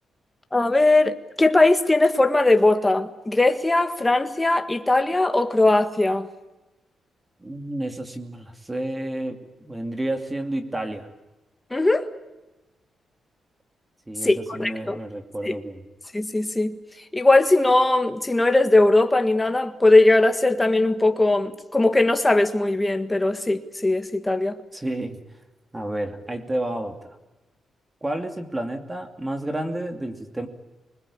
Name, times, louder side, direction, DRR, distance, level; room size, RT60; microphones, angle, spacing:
voice 1, 0.5-6.3 11.7-12.1 14.2-15.0 15.4-15.6 16.1-16.8 17.1-24.6, left 2 dB, 10° left, 1.7 m, -19 dB
voice 2, 7.4-11.1 14.1-15.8 24.7-25.2 25.7-27.1 28.0-30.5, right 1 dB, 15° right, 2.6 m, -30 dB
26.0 x 21.5 x 8.6 m
cardioid pair, 135°, 0 cm